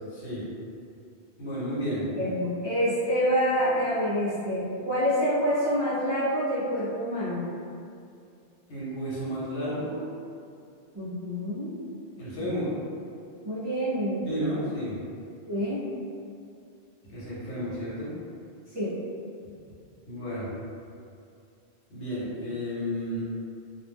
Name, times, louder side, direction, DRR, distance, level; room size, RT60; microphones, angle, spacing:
voice 1, 0.1-0.5 1.4-2.1 8.7-10.0 12.2-12.7 14.3-15.0 17.0-18.1 20.1-20.5 21.9-23.2, equal, 80° left, -9 dB, 1.2 m, -32 dB
voice 2, 2.1-7.5 10.9-11.7 13.4-14.2 15.5-15.8 18.7-19.0, equal, 40° right, -13 dB, 0.4 m, -27 dB
2.4 x 2.0 x 3.3 m, 2.4 s
omnidirectional pair, 1.1 m